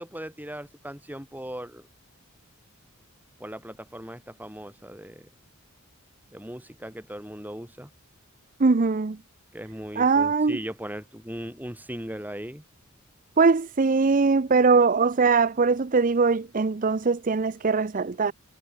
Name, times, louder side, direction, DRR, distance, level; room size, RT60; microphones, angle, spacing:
voice 1, 0.0-1.9 3.4-5.3 6.3-7.9 9.5-12.6, equal, 10° right, 7.8 m, -38 dB
voice 2, 8.6-9.2 10.0-10.6 13.4-18.3, right 4 dB, 35° right, 0.5 m, -21 dB
head